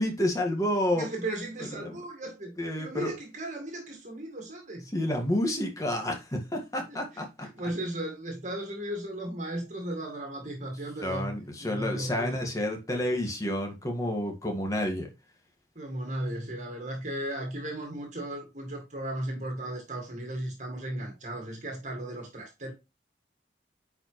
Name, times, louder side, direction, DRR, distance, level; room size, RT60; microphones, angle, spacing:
voice 1, 0.0-1.1 1.8-2.0 2.6-3.1 4.9-7.2 11.0-15.1, left 1 dB, 20° left, 1.7 m, -29 dB
voice 2, 0.9-4.9 6.8-12.5 15.8-22.7, right 1 dB, 40° right, 1.8 m, -36 dB
9.6 x 4.8 x 3.1 m
head